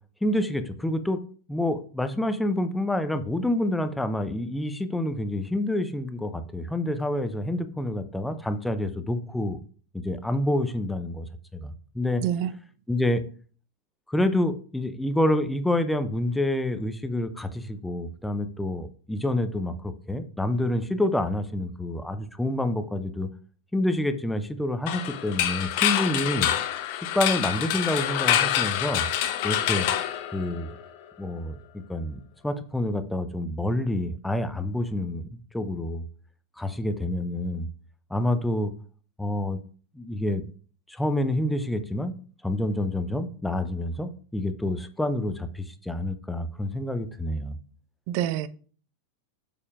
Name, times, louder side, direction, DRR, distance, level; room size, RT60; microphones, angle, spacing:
voice 1, 0.2-1.2 1.5-9.6 9.9-12.2 12.9-13.2 14.1-23.3 23.7-26.5 27.0-29.1 29.4-29.9 30.3-30.7 31.2-36.0 36.6-37.7 38.1-38.7 39.2-39.6 39.9-40.4 40.9-42.1 42.4-47.6, left 1 dB, 5° left, 0.6 m, -28 dB
voice 2, 12.2-12.5 48.1-48.5, right 11 dB, 45° right, 0.4 m, -26 dB
sound 1, 24.9-30.8, left 11 dB, 45° left, 0.8 m, -26 dB
8.3 x 6.8 x 2.4 m
figure-of-eight pair, 90°, 0 cm